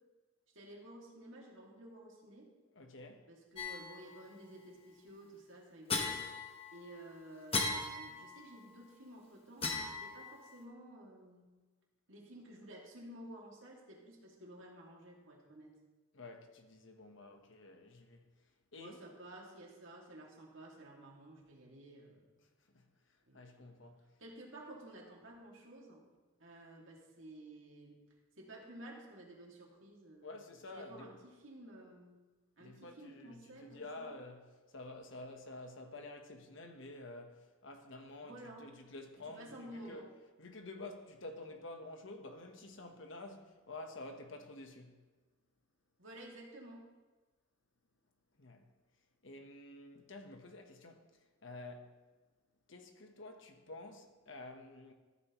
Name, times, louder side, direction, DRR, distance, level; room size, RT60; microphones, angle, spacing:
voice 1, 0.5-2.5 3.3-6.2 6.7-11.5 12.1-15.7 18.8-22.3 23.3-23.7 24.2-26.0 26.4-28.0 28.4-30.3 30.7-32.2 32.6-34.1 38.2-38.7 39.2-40.1 46.0-46.8, right 1 dB, 70° right, 2.3 m, -53 dB
voice 2, 2.7-3.3 16.1-18.3 18.7-19.0 22.7-22.9 23.3-24.0 30.2-31.1 32.6-40.1 40.4-45.0 48.4-48.7 49.2-51.9 52.7-54.9, left 2 dB, 65° left, 1.2 m, -50 dB
sound 1, 3.6-4.3 5.9-7.0 7.5-8.6 9.6-10.6, left 3 dB, 25° left, 1.1 m, -38 dB
14.0 x 9.1 x 3.1 m
head